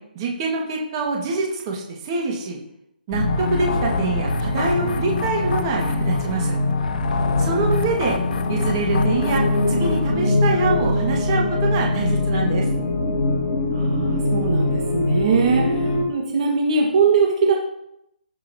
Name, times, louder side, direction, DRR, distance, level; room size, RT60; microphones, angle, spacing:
voice 1, 0.1-2.6 3.1-6.5 7.4-8.2 8.5-12.7, right 3 dB, 25° right, -1 dB, 1.5 m, -25 dB
sound 1, 3.1-16.0, left 2 dB, 30° left, 2.1 m, -22 dB
sound 2, 3.3-10.1, left 5 dB, 60° left, 0.8 m, -29 dB
voice 2, 7.3-7.8 13.7-17.5, right 5 dB, 40° right, 0 dB, 1.3 m, -21 dB
15.5 x 5.4 x 2.7 m, 0.80 s
hypercardioid pair, 165°, 5 cm